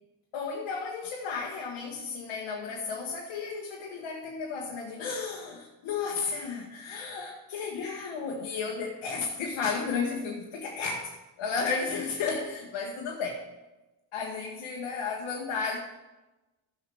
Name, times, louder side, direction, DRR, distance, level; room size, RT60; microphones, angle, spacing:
voice 1, 0.3-13.4 14.1-15.8, left 5 dB, 80° left, -2 dB, 1.3 m, -33 dB
13.5 x 6.6 x 3.5 m, 1.1 s
supercardioid pair, 45°, 47 cm